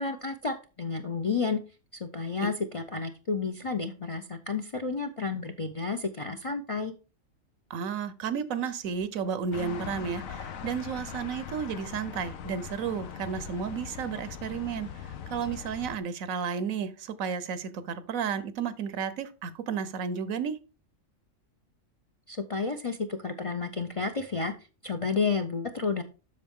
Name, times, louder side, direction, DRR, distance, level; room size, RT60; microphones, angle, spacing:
voice 1, 0.0-1.6 1.9-6.9 22.3-24.5 24.8-26.0, left 4 dB, 45° left, 8 dB, 0.4 m, -31 dB
voice 2, 7.7-20.6, right 6 dB, 90° right, 14 dB, 1.2 m, -32 dB
sound 1, 9.5-16.0, left 8 dB, 85° left, 1.2 m, -40 dB
7.7 x 6.3 x 3.6 m, 0.33 s
omnidirectional pair, 1.4 m